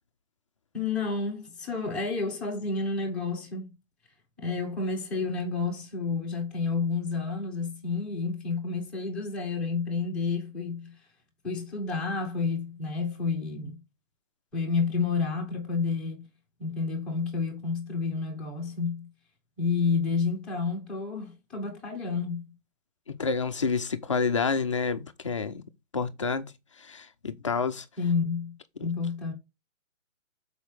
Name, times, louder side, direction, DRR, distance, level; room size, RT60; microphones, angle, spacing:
voice 1, 0.7-3.7 4.4-11.0 11.4-13.8 14.5-16.2 16.6-19.1 19.6-22.5 28.0-28.5 28.8-29.3, left 4 dB, ahead, 1.0 m, -30 dB
voice 2, 23.1-25.6 25.9-26.5 26.8-27.9 28.8-28.9, left 5 dB, 25° left, 0.5 m, -29 dB
6.8 x 4.9 x 4.7 m
hypercardioid pair, 165°, 39 cm